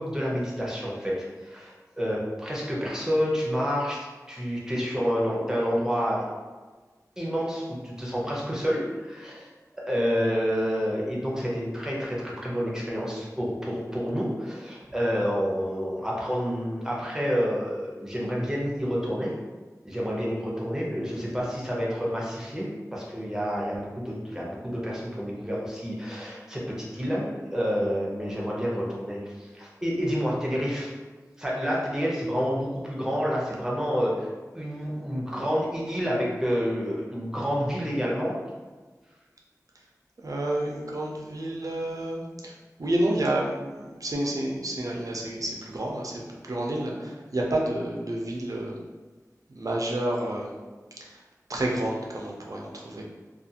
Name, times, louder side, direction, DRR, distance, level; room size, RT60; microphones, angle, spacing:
voice 1, 0.0-6.3 7.2-9.5 9.9-19.3 19.8-30.9 31.4-38.3, equal, 10° right, -5 dB, 0.7 m, -29 dB
voice 2, 40.2-48.8 49.5-50.5 51.0-51.2 51.5-53.0, right 1 dB, 65° right, -2 dB, 0.5 m, -30 dB
2.4 x 2.3 x 2.7 m, 1.3 s
wide cardioid pair, 55°, 6 cm